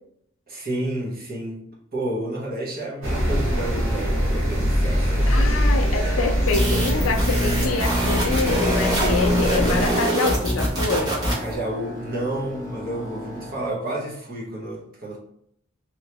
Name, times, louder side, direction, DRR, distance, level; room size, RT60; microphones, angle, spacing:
voice 1, 0.5-1.6 1.9-5.4 11.2-15.2, right 1 dB, 50° right, -3 dB, 1.1 m, -30 dB
sound 1, 3.0-9.9, equal, 70° right, 1.2 m, -23 dB
voice 2, 5.3-11.1, left 4 dB, 75° left, 3 dB, 0.4 m, -26 dB
sound 2, 6.5-11.5, equal, 20° right, 1.1 m, -23 dB
sound 3, 7.5-13.7, left 1 dB, 15° left, 0.8 m, -38 dB
3.1 x 2.7 x 3.2 m, 0.71 s
head